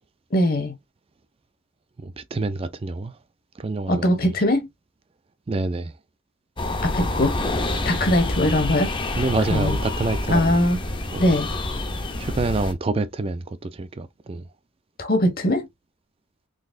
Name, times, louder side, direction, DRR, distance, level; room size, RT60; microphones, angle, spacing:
voice 1, 0.3-0.7 3.9-4.7 6.8-7.4 7.8-8.9 9.5-9.8 10.3-10.8 11.2-11.5 15.0-15.7, left 1 dB, 45° left, 0.9 m, -21 dB
voice 2, 2.0-3.2 3.6-4.3 5.5-5.9 9.2-10.6 11.1-11.3 12.2-14.5, right 3 dB, 30° right, 0.3 m, -27 dB
sound 1, 6.6-12.7, left 2 dB, 25° left, 0.5 m, -27 dB
3.9 x 2.8 x 2.5 m
head